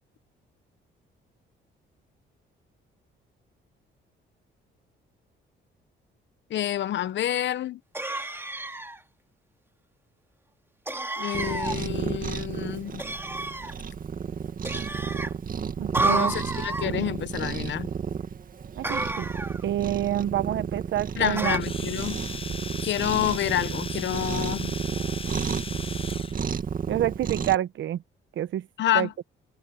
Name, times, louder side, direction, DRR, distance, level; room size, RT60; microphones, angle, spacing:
voice 1, 6.5-7.8 11.2-13.0 16.0-17.9 21.2-22.2 22.8-24.7 28.8-29.1, left 12 dB, 65° left, 1.0 m, -28 dB
sound 1, 7.9-9.0 10.9-11.8 13.0-13.7 14.6-15.3 15.9-16.9 18.8-19.6 21.4-21.6, right 2 dB, 10° right, 2.5 m, -30 dB
Cat, 11.3-27.6, right 7 dB, 45° right, 2.0 m, -32 dB
voice 2, 15.8-16.3 16.9-17.0 18.8-19.3 19.6-21.6 26.9-28.0 28.4-28.7 28.9-29.1, right 12 dB, 70° right, 1.1 m, -27 dB
Domestic sounds home sounds, 21.5-26.4, left 5 dB, 25° left, 0.6 m, -38 dB
cardioid pair, 90°, 20 cm